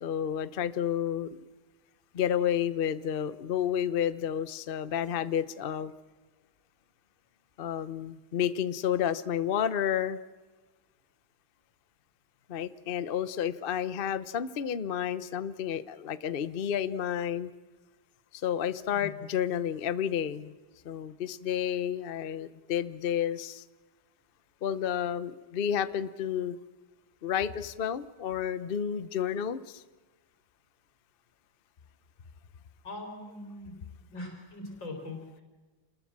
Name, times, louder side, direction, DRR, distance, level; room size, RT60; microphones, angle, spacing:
voice 1, 0.0-1.4 2.1-5.9 7.6-10.2 12.5-17.5 18.3-20.5 20.8-23.6 24.6-26.6 27.2-29.8, left 9 dB, 75° left, 13 dB, 0.5 m, -31 dB
voice 2, 32.8-33.7 34.1-35.4, left 2 dB, 60° left, 2 dB, 4.6 m, -41 dB
27.5 x 20.5 x 7.4 m, 1.3 s
omnidirectional pair, 2.3 m